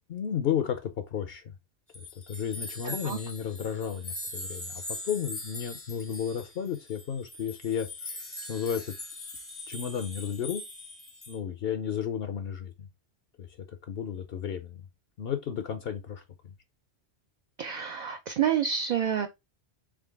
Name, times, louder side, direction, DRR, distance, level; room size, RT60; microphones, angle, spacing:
voice 1, 0.1-1.4 1.9-7.9 8.5-8.9 9.7-10.6 11.3-12.9 13.4-14.8 15.2-16.2, left 8 dB, 65° left, 0.8 m, -33 dB
sound 1, 1.9-11.4, left 1 dB, 15° left, 0.5 m, -41 dB
voice 2, 2.8-3.2 17.6-19.3, right 8 dB, 55° right, 0.5 m, -28 dB
3.8 x 3.2 x 3.4 m
omnidirectional pair, 1.1 m